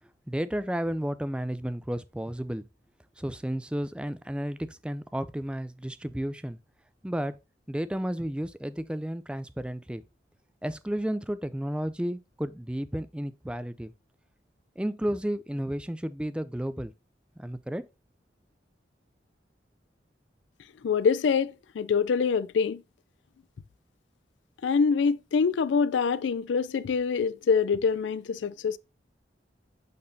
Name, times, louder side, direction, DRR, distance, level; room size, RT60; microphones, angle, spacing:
voice 1, 0.3-2.7 3.2-6.6 7.0-7.4 7.7-10.0 10.6-13.9 14.8-16.9 17.4-17.8, equal, 5° right, 0.3 m, -32 dB
voice 2, 20.8-22.8 24.6-28.8, left 5 dB, 85° left, 0.4 m, -25 dB
8.5 x 4.2 x 2.6 m
head